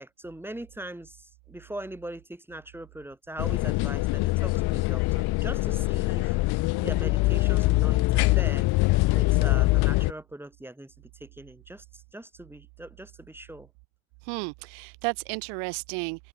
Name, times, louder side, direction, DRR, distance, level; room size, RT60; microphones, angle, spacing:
voice 1, 0.0-6.4 6.8-8.7 9.1-13.7, right 1 dB, 5° right, 4.8 m, -41 dB
sound 1, 3.4-10.1, left 21 dB, 55° left, 1.1 m, -23 dB
voice 2, 14.2-16.3, right 40 dB or more, 60° right, 0.5 m, -33 dB
hypercardioid pair, 90°, 47 cm